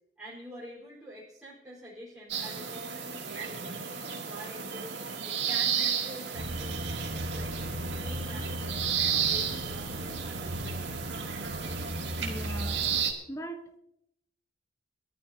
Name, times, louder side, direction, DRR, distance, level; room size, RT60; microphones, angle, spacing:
voice 1, 0.2-4.9 5.2-7.5 8.0-8.8 9.1-10.8 11.2-11.8, equal, 5° right, -10 dB, 4.6 m, -47 dB
sound 1, 2.3-13.1, right 7 dB, 65° right, 2.6 m, -33 dB
sound 2, 6.3-13.0, equal, 85° right, 1.5 m, -37 dB
voice 2, 12.2-12.8 13.3-13.8, equal, 15° left, 5 dB, 1.3 m, -40 dB
22.5 x 13.5 x 2.9 m, 0.79 s
head